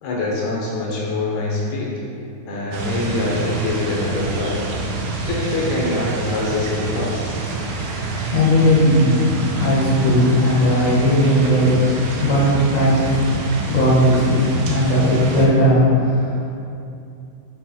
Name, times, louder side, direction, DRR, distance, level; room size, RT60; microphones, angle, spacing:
voice 1, 0.0-2.0 2.5-4.6 5.2-7.3, left 2 dB, 70° left, -4 dB, 2.0 m, -24 dB
sound 1, 2.7-15.5, right 3 dB, 90° right, 2.3 m, -27 dB
voice 2, 8.3-11.8 12.2-16.5, equal, 45° left, -6 dB, 1.1 m, -17 dB
7.0 x 3.9 x 4.4 m, 2.6 s
omnidirectional pair, 3.7 m